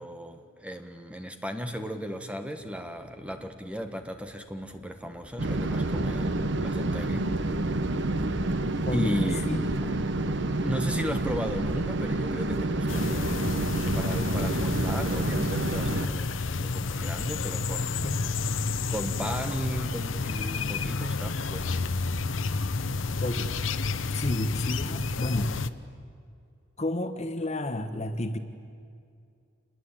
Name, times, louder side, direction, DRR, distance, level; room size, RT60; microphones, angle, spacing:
voice 1, 0.0-7.3 8.9-9.5 9.7-9.9 10.5-18.1 18.9-22.0, equal, 5° right, 6 dB, 1.5 m, -36 dB
sound 1, 2.6-21.3, equal, 20° right, 6.2 m, -54 dB
sound 2, 5.4-16.1, right 2 dB, 65° right, 1.1 m, -28 dB
voice 2, 8.8-9.1 9.4-9.7 18.0-18.3 23.2-23.5 24.1-25.6 26.8-28.4, left 1 dB, 35° left, 8 dB, 1.3 m, -31 dB
sound 3, 12.9-25.7, left 4 dB, 85° left, 0.9 m, -30 dB
27.5 x 21.5 x 9.0 m, 2.3 s
head